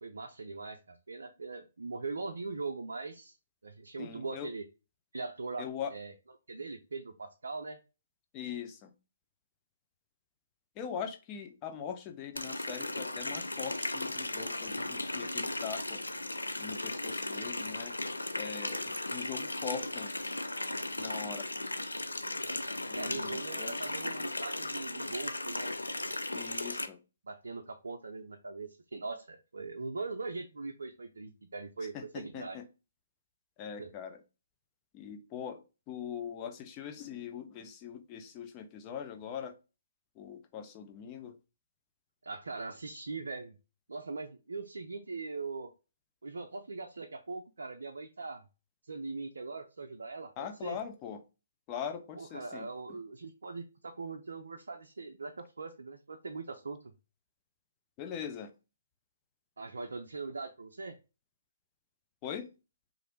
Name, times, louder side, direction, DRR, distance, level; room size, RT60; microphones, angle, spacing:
voice 1, 0.0-3.4 3.6-4.6 5.1-6.1 6.5-7.8 22.9-25.7 27.2-32.6 33.8-33.9 42.2-43.6 43.9-45.7 46.2-48.4 48.8-50.8 52.2-56.8 59.6-60.9, right 3 dB, 70° right, 0.4 m, -41 dB
voice 2, 4.0-4.5 5.6-5.9 8.3-8.9 10.8-16.0 16.6-17.9 18.3-20.1 21.0-21.5 22.9-23.9 26.3-27.0 31.9-32.6 33.6-34.2 34.9-39.6 40.2-41.4 50.4-51.2 51.7-52.7 58.0-58.5 62.2-62.5, left 8 dB, 25° left, 0.5 m, -41 dB
Water tap faucet, 12.4-26.9, left 2 dB, 85° left, 0.3 m, -36 dB
3.0 x 2.5 x 3.0 m
figure-of-eight pair, 130°, 0 cm